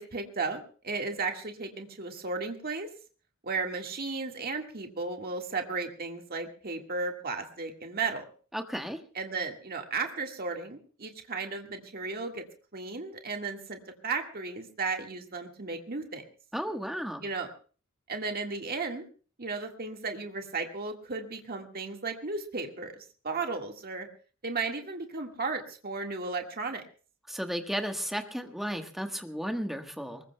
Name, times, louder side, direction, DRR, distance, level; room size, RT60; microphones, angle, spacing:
voice 1, 0.0-2.9 3.4-8.2 9.2-12.5 12.7-16.2 17.2-17.5 18.1-19.1 19.4-22.9 23.2-24.1 24.4-26.8, right 4 dB, 45° right, 3 dB, 1.7 m, -34 dB
voice 2, 8.5-9.0 16.5-17.2 27.3-30.2, equal, ahead, 5 dB, 1.3 m, -34 dB
23.5 x 21.0 x 2.2 m, 0.40 s
head